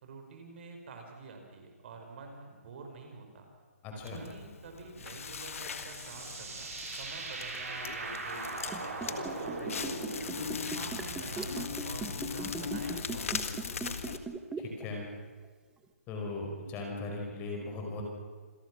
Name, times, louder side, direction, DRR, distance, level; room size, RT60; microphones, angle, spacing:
voice 1, 0.0-3.5 4.0-10.3 10.7-13.4, right 4 dB, 45° right, 4 dB, 4.7 m, -48 dB
voice 2, 3.8-4.2 14.6-15.1 16.1-18.0, left 2 dB, 20° left, 1 dB, 5.2 m, -38 dB
Crackle, 4.0-14.2, left 6 dB, 65° left, 1.7 m, -39 dB
sound 1, 5.2-12.4, right 3 dB, 70° right, 5.3 m, -41 dB
Liquid, 8.7-14.8 15.1-15.2, right 5 dB, 10° right, 1.3 m, -39 dB
27.5 x 17.0 x 6.1 m, 1.5 s
hypercardioid pair, 145°, 8 cm